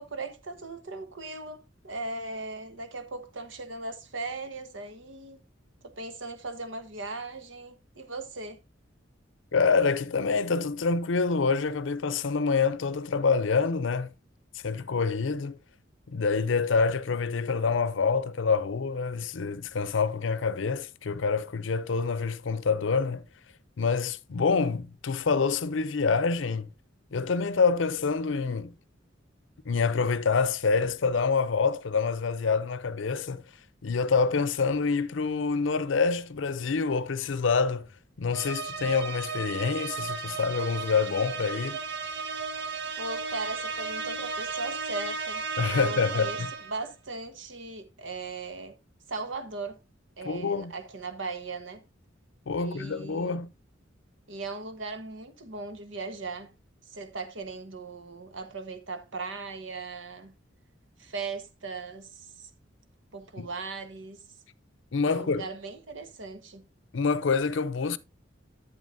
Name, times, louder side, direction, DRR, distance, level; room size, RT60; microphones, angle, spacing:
voice 1, 0.0-5.4 5.8-8.6 43.0-45.4 45.7-48.8 49.1-49.8 50.2-51.8 52.6-53.4 54.3-56.5 56.8-60.3 61.0-62.5 63.1-64.2 65.0-66.6, right 3 dB, 80° right, 1.3 m, -38 dB
voice 2, 9.5-14.1 14.6-15.6 16.1-23.2 23.8-26.7 27.1-28.7 29.7-33.4 33.8-37.9 38.2-41.8 45.6-46.5 50.2-50.7 52.5-53.5 63.4-63.5 64.9-65.4 66.9-68.0, left 5 dB, 70° left, 0.6 m, -26 dB
sound 1, 38.3-46.8, right 5 dB, 60° right, 1.4 m, -34 dB
11.0 x 8.1 x 2.6 m
head